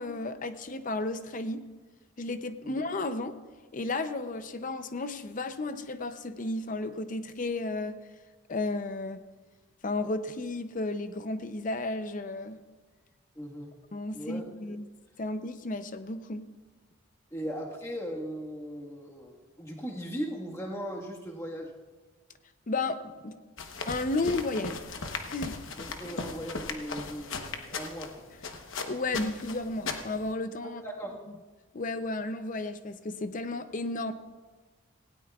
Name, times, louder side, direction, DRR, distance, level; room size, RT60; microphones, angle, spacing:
voice 1, 0.0-1.7 2.2-3.4 3.7-8.0 8.5-9.2 9.8-12.6 13.9-14.9 15.2-16.5 22.7-23.4 23.9-24.8 25.3-25.6 28.8-30.8 31.7-34.1, left 2 dB, 40° left, 10 dB, 0.6 m, -33 dB
voice 2, 13.3-13.8 14.1-14.7 17.3-21.7 25.8-28.2 30.6-31.2, equal, 15° left, -2 dB, 1.6 m, -38 dB
sound 1, 23.6-30.3, left 4 dB, 60° left, 1.0 m, -38 dB
18.0 x 16.5 x 2.4 m, 1.3 s
head